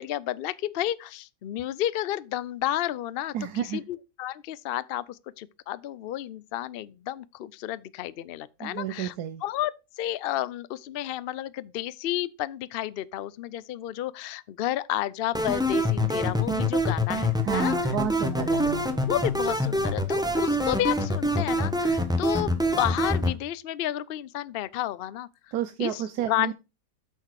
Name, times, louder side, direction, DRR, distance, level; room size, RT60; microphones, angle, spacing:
voice 1, 0.0-9.1 9.4-18.0 18.3-18.4 19.0-25.3 25.8-26.5, left 13 dB, 70° left, 0.5 m, -31 dB
voice 2, 3.3-3.8 8.6-9.4 17.4-19.0 25.5-26.5, right 10 dB, 90° right, 1.3 m, -31 dB
sound 1, 15.3-23.3, left 1 dB, 5° right, 0.9 m, -25 dB
8.5 x 6.5 x 4.7 m
omnidirectional pair, 1.6 m